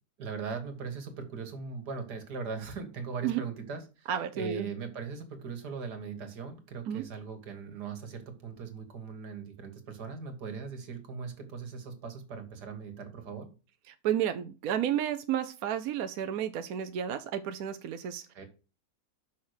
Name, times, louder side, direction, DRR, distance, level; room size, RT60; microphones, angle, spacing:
voice 1, 0.2-4.1 4.3-13.5 18.3-18.4, right 5 dB, 85° right, 7 dB, 2.1 m, -39 dB
voice 2, 4.1-4.7 6.9-7.0 13.9-18.3, right 9 dB, 70° right, 7 dB, 1.1 m, -31 dB
5.9 x 5.6 x 6.6 m, 0.32 s
omnidirectional pair, 1.7 m